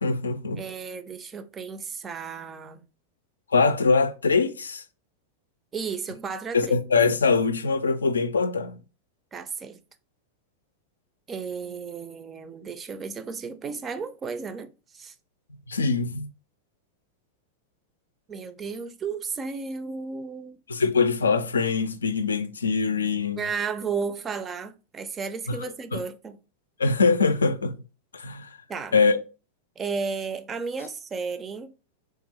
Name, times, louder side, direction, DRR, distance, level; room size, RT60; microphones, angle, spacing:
voice 1, 0.0-0.6 3.5-4.8 6.5-8.8 15.7-16.3 20.7-23.4 25.5-26.0 26.8-27.8 28.1-28.6 28.9-29.2, left 4 dB, 75° left, 0.4 m, -23 dB
voice 2, 0.6-2.8 5.7-6.7 9.3-9.8 11.3-15.1 18.3-20.6 23.4-26.4 28.7-28.9 29.8-31.7, right 5 dB, 20° right, 0.5 m, -33 dB
3.5 x 3.5 x 3.2 m
figure-of-eight pair, 90°, 0 cm